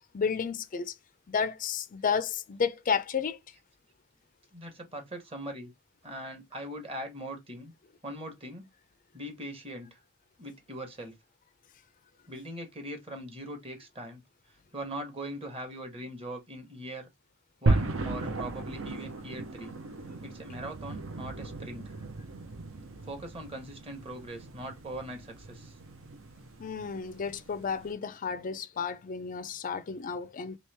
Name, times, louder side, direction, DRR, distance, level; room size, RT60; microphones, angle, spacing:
voice 1, 0.1-0.9 1.3-3.4 26.6-30.6, left 6 dB, 40° left, 0.4 m, -32 dB
voice 2, 4.5-5.7 6.0-7.7 8.0-8.7 9.1-10.0 10.4-11.1 12.3-14.2 14.7-17.1 17.6-19.8 20.2-21.9 23.1-25.8, right 1 dB, 25° right, 1.0 m, -41 dB
sound 1, 17.7-27.9, right 2 dB, 65° right, 0.6 m, -35 dB
3.1 x 2.9 x 3.3 m
head